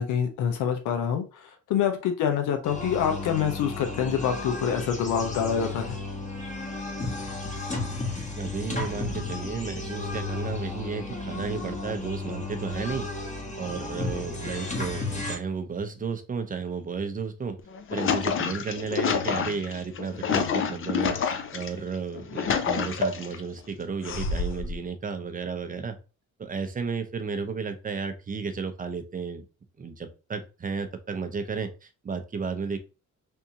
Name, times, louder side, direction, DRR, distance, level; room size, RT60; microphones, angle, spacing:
voice 1, 0.0-6.0, left 8 dB, 85° left, 5 dB, 0.7 m, -26 dB
sound 1, 2.6-15.4, left 2 dB, 25° left, 1.1 m, -33 dB
voice 2, 8.4-13.1 13.6-17.6 17.9-26.0 26.4-29.4 29.8-32.8, right 5 dB, 30° right, 8 dB, 0.6 m, -33 dB
sound 2, 17.6-21.7 22.1-23.4 24.0-24.8, left 6 dB, 45° left, 0.5 m, -28 dB
3.6 x 2.6 x 2.8 m, 0.31 s
cardioid pair, 90°, 30 cm